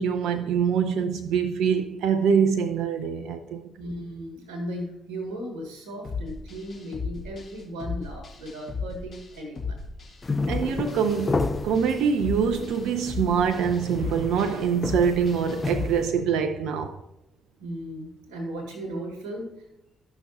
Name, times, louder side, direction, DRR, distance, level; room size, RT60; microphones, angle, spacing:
voice 1, 0.0-3.7 10.5-17.0, right 7 dB, 65° right, 0.5 m, -24 dB
voice 2, 3.8-9.8 17.6-19.6, equal, 80° right, 1.2 m, -36 dB
sound 1, 6.0-15.9, left 4 dB, 55° left, 1.8 m, -36 dB
sound 2, 10.2-16.1, left 3 dB, 30° left, 0.7 m, -32 dB
13.0 x 5.9 x 2.7 m
figure-of-eight pair, 40°, 0 cm